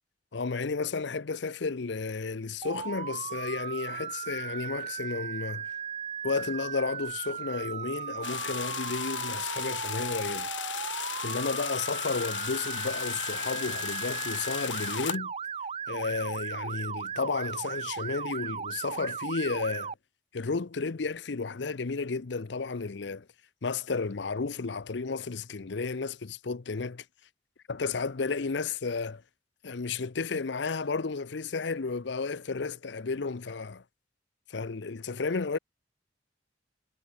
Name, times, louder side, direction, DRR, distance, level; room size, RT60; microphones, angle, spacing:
voice 1, 0.3-5.7 6.2-10.5 11.2-15.3 15.9-19.9 20.3-23.3 23.6-27.0 27.8-29.2 29.6-33.8 34.5-35.6, left 4 dB, 65° left, 0.7 m, -32 dB
Motor vehicle (road) / Siren, 2.6-19.9, right 7 dB, 35° right, 0.5 m, -37 dB
sound 1, 8.2-15.2, left 8 dB, 90° left, 2.9 m, -36 dB
head